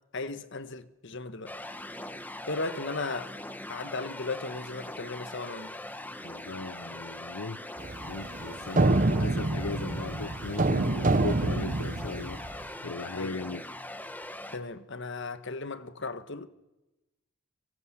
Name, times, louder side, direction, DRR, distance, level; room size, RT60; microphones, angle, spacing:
voice 1, 0.1-1.5 2.5-3.3 3.7-5.7 13.2-13.3 14.5-16.5, left 3 dB, 55° left, 1.4 m, -36 dB
sound 1, 1.5-14.6, left 1 dB, 10° left, 1.3 m, -41 dB
voice 2, 6.2-7.6 8.1-12.4 12.8-13.7, left 3 dB, 75° left, 0.9 m, -37 dB
sound 2, 7.8-12.6, right 2 dB, 35° right, 0.8 m, -27 dB
24.5 x 24.5 x 7.6 m
head